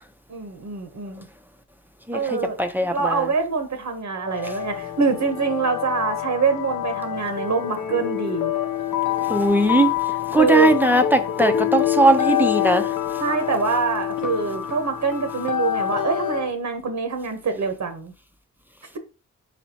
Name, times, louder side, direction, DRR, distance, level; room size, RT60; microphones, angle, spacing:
voice 1, 0.3-1.3 2.1-8.5 10.4-10.7 13.2-18.1, right 5 dB, 60° right, 1.0 m, -25 dB
voice 2, 2.1-3.3 9.3-9.9 10.3-12.9, right 1 dB, 5° right, 0.7 m, -19 dB
sound 1, 4.2-16.5, left 11 dB, 80° left, 0.7 m, -26 dB
4.3 x 4.2 x 2.8 m
cardioid pair, 65°, 32 cm